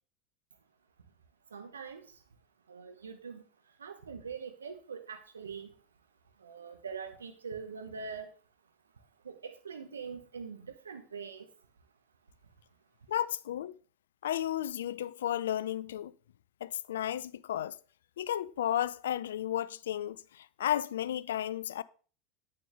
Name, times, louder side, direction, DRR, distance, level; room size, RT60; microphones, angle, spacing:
voice 1, 1.5-2.2 2.7-5.7 6.4-8.3 9.0-11.5, right 5 dB, 85° right, 0.9 m, -43 dB
voice 2, 13.1-13.7 14.2-16.1 16.6-17.8 18.2-21.8, left 11 dB, 75° left, 0.4 m, -33 dB
9.8 x 8.7 x 3.4 m
hypercardioid pair, 85°, 0 cm